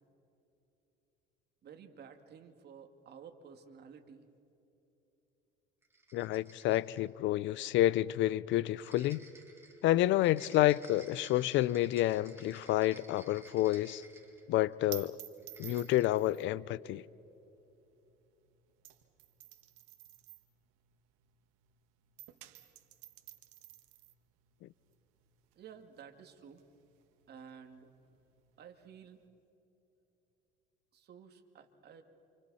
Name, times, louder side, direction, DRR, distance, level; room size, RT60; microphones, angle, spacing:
voice 1, 1.6-4.3 25.6-26.6 27.3-27.9 28.6-29.2 30.9-32.0, right 7 dB, 50° right, 2.3 m, -53 dB
sound 1, 5.8-7.1 8.8-14.7 15.4-16.3, right 3 dB, 10° right, 5.3 m, -57 dB
voice 2, 6.1-9.2 9.8-14.0 14.5-15.2 15.6-17.0, left 15 dB, 65° left, 0.5 m, -29 dB
sound 2, 12.9-21.8 22.0-29.3, right 15 dB, 85° right, 1.7 m, -53 dB
29.5 x 28.0 x 4.2 m
cardioid pair, 110°, 21 cm